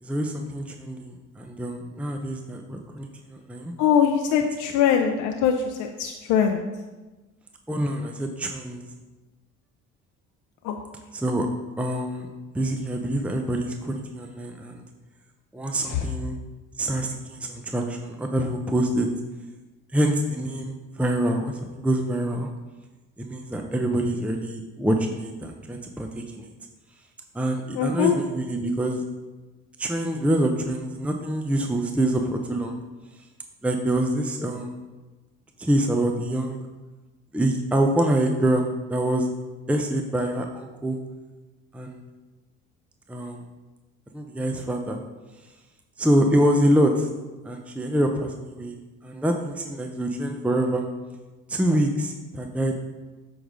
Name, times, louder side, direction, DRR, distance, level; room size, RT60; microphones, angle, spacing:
voice 1, 0.0-3.7 7.7-8.8 11.1-11.5 11.8-12.3 12.5-14.8 15.5-16.4 16.8-19.1 19.9-22.5 23.2-26.5 27.3-29.0 29.8-32.8 33.6-34.8 35.6-36.6 37.3-39.3 39.7-41.0 41.7-42.0 43.1-43.4 44.1-45.0 46.0-47.1 47.4-48.7 49.0-50.9 51.5-52.7, right 1 dB, 5° right, 3 dB, 0.7 m, -25 dB
voice 2, 3.8-6.7 10.6-10.8 15.8-16.1 27.7-28.2, left 8 dB, 70° left, 3 dB, 0.6 m, -22 dB
7.7 x 3.9 x 5.0 m, 1.2 s
supercardioid pair, 80°, 31 cm